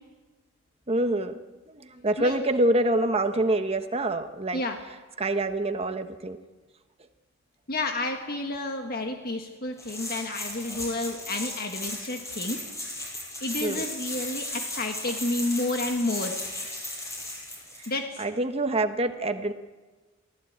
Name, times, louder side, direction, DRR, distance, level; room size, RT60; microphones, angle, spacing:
voice 1, 0.9-1.4 1.7-4.6 5.2-6.4 13.6-13.8 18.2-19.5, right 1 dB, 30° right, 7 dB, 1.1 m, -26 dB
voice 2, 7.7-12.6 13.4-16.4 17.9-18.2, left 2 dB, 50° left, 4 dB, 1.6 m, -30 dB
sound 1, 9.8-17.9, left 1 dB, 15° left, 7.1 m, -36 dB
23.5 x 15.5 x 8.7 m, 1.3 s
head